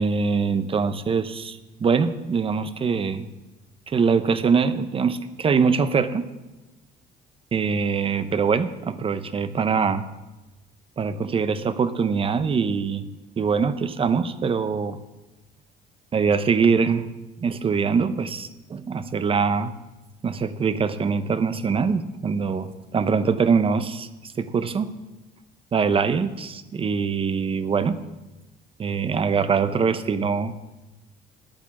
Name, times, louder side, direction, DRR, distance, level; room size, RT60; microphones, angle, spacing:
voice 1, 0.0-3.3 3.9-6.3 7.5-10.0 11.0-13.0 13.4-15.0 16.1-17.1 17.4-19.7 20.2-24.9 25.7-28.0 28.8-30.5, right 5 dB, 35° right, 12 dB, 0.8 m, -23 dB
10.5 x 8.8 x 7.2 m, 1.1 s
cardioid pair, 110°, 17 cm